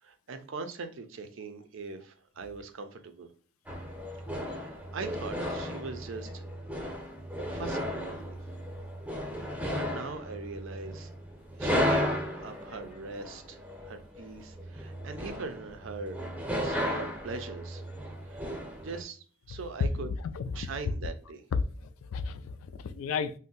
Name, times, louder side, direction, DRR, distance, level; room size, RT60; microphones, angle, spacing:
voice 1, 0.0-3.3 4.4-6.4 7.5-8.4 9.3-11.1 11.6-17.8 18.2-18.4 18.8-20.1 20.5-21.4, right 4 dB, 70° right, 0.5 m, -41 dB
sound 1, 3.7-19.0, equal, 10° right, 0.6 m, -35 dB
voice 2, 20.0-20.7 21.8-23.3, left 5 dB, 90° left, 0.4 m, -35 dB
2.6 x 2.1 x 3.8 m
head